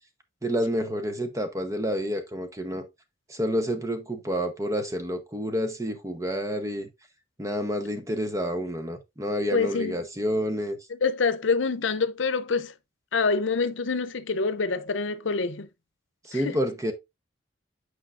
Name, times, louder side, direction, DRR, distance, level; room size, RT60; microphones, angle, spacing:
voice 1, 0.4-2.9 3.3-6.9 7.4-10.8 16.3-16.9, equal, 15° right, 0.9 m, -29 dB
voice 2, 9.5-10.0 11.0-12.7 13.1-15.7 16.3-16.6, left 4 dB, 85° left, 0.7 m, -26 dB
8.7 x 4.9 x 2.5 m
head